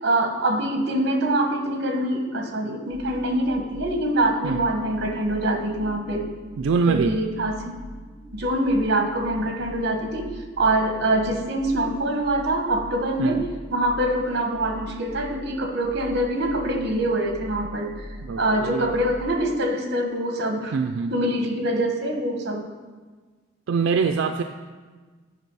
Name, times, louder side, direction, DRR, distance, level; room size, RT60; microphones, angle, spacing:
voice 1, 0.0-6.3 6.9-7.7 8.3-10.3 10.6-13.4 13.7-18.1 18.4-20.7 21.1-22.7, right 1 dB, 55° right, 4 dB, 1.1 m, -24 dB
sound 1, 2.9-19.3, equal, 90° left, 1.3 m, -42 dB
voice 2, 6.6-7.2 13.2-13.5 18.2-19.0 20.7-21.1 23.7-24.4, right 5 dB, 80° right, 6 dB, 0.4 m, -24 dB
9.4 x 5.4 x 4.6 m, 1.4 s
head